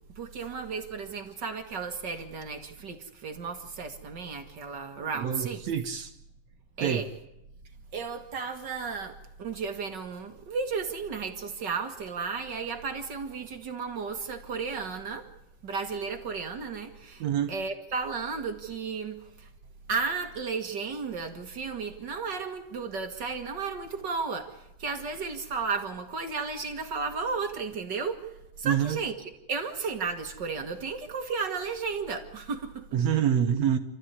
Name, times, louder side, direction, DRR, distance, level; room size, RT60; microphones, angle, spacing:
voice 1, 0.1-5.6 6.8-7.1 7.9-15.3 15.6-19.5 19.9-32.9, right 5 dB, 45° right, 1.6 m, -34 dB
voice 2, 5.2-6.1 6.8-7.0 17.2-17.5 28.6-29.0 32.9-33.8, right 9 dB, 65° right, 1.8 m, -26 dB
28.5 x 14.5 x 9.6 m
omnidirectional pair, 4.1 m